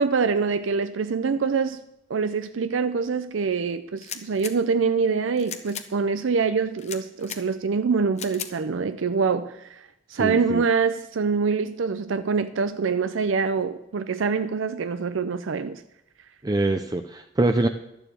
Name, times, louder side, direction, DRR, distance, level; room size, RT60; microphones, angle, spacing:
voice 1, 0.0-1.8 2.1-9.8 10.1-15.8, right 5 dB, 80° right, 0.5 m, -25 dB
sound 1, 4.0-4.5 5.4-5.9 6.8-7.4 8.2-8.5, left 8 dB, 35° left, 0.9 m, -36 dB
voice 2, 10.1-10.6 16.4-17.7, right 2 dB, 20° right, 0.5 m, -24 dB
12.0 x 7.1 x 8.4 m
head